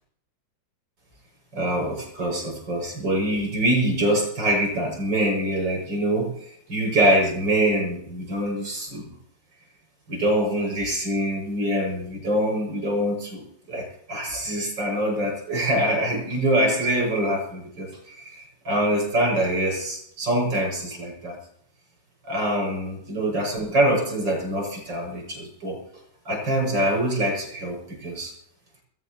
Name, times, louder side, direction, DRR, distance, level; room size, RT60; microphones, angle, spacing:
voice 1, 1.5-9.1 10.1-21.4 22.2-25.8 26.3-28.3, right 1 dB, 70° right, 0 dB, 7.8 m, -24 dB
22.5 x 17.0 x 3.1 m, 0.70 s
omnidirectional pair, 2.0 m